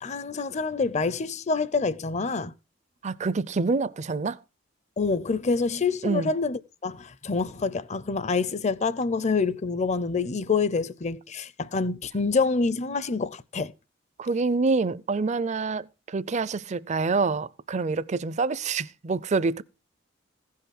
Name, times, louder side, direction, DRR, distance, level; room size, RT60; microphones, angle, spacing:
voice 1, 0.0-2.5 5.0-13.7, left 4 dB, 35° left, 0.6 m, -27 dB
voice 2, 3.0-4.4 6.0-6.3 14.2-19.6, right 4 dB, 40° right, 0.5 m, -26 dB
16.0 x 5.7 x 5.9 m
head